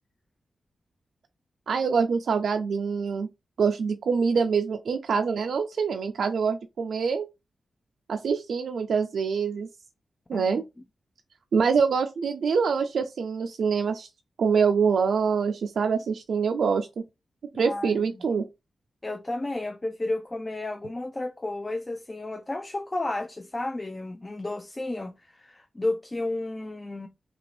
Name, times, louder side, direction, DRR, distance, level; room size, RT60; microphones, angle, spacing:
voice 1, 1.7-3.3 3.6-7.3 8.1-9.7 10.3-10.6 11.5-14.1 14.4-16.9 17.5-18.5, right 5 dB, 85° right, 0.3 m, -25 dB
voice 2, 17.6-18.2 19.0-27.1, left 2 dB, 25° left, 0.3 m, -32 dB
2.8 x 2.6 x 3.1 m
cardioid pair, 70°, 0 cm